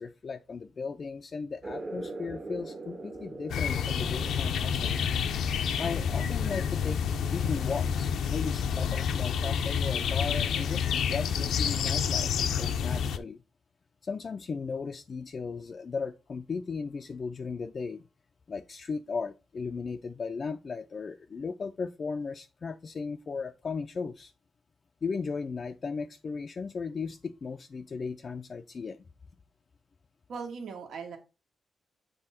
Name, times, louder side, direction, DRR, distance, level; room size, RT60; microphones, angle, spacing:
voice 1, 0.0-4.9 5.8-7.0 7.3-13.4 14.0-18.0 18.5-24.3 25.0-29.0, left 5 dB, 40° left, 0.4 m, -36 dB
sound 1, 1.6-8.8, right 2 dB, 35° right, 1.1 m, -44 dB
sound 2, 3.5-13.2, left 7 dB, 85° left, 0.7 m, -29 dB
voice 2, 30.3-31.2, right 5 dB, 75° right, 1.6 m, -39 dB
7.6 x 3.6 x 4.3 m
cardioid pair, 130°, 0 cm